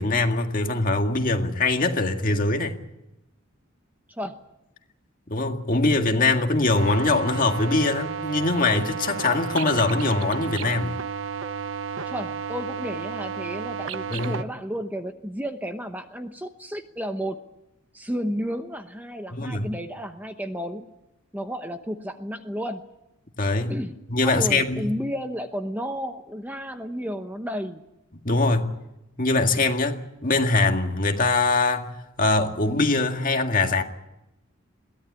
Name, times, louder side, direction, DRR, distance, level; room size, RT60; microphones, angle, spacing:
voice 1, 0.0-2.8 5.3-10.9 14.1-14.4 19.3-19.7 23.4-23.7 24.1-24.9 28.2-28.7 29.2-31.9 32.2-33.8, left 3 dB, 40° left, 1.9 m, -22 dB
sound 1, 6.7-14.4, right 6 dB, 70° right, 0.9 m, -32 dB
voice 2, 12.0-17.4 17.9-20.8 21.3-22.8 23.7-27.8, equal, 10° right, 0.9 m, -32 dB
22.5 x 17.0 x 8.4 m
head